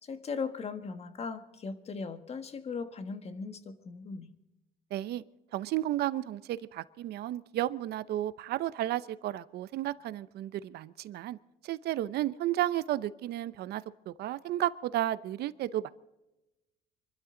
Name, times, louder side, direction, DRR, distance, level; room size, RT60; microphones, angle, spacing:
voice 1, 0.0-4.3, left 5 dB, 40° left, 1.5 m, -38 dB
voice 2, 4.9-5.2 5.5-11.4 11.6-15.9, right 13 dB, 70° right, 0.8 m, -33 dB
26.0 x 12.5 x 3.9 m
cardioid pair, 110°, 17 cm